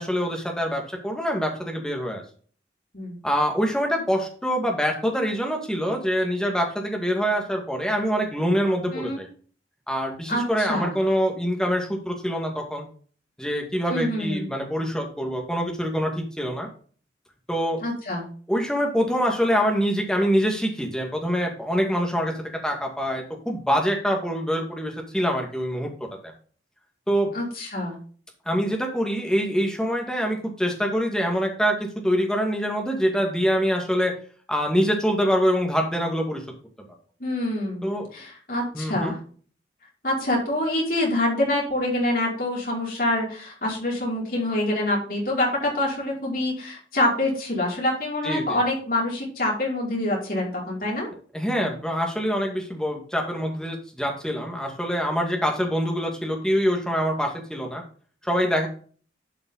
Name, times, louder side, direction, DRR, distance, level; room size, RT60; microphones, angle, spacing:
voice 1, 0.0-2.2 3.2-9.3 9.9-12.8 13.4-16.7 17.5-17.8 18.5-22.3 22.6-25.9 26.2-26.3 27.1-27.3 28.5-34.1 34.5-36.4 37.8-38.1 38.7-39.1 48.2-48.6 51.3-57.8 58.2-58.7, equal, 5° left, 1 dB, 2.2 m, -25 dB
voice 2, 10.3-10.9 13.9-14.5 17.8-18.2 27.3-28.0 37.2-37.9 38.1-39.2 40.0-51.1, left 1 dB, 50° left, -3 dB, 5.2 m, -26 dB
11.5 x 5.9 x 3.9 m, 0.43 s
head